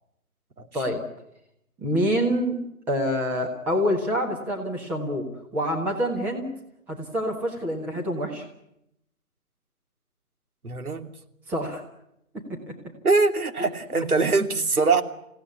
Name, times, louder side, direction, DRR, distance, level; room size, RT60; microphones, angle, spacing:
voice 1, 1.8-2.6 2.9-5.3 5.5-6.5 6.9-8.4 11.5-11.8, equal, 5° right, -1 dB, 1.4 m, -26 dB
voice 2, 10.6-11.1 13.0-15.0, right 4 dB, 80° right, 7 dB, 3.0 m, -22 dB
28.5 x 17.0 x 9.6 m, 0.83 s
figure-of-eight pair, 160°, 43 cm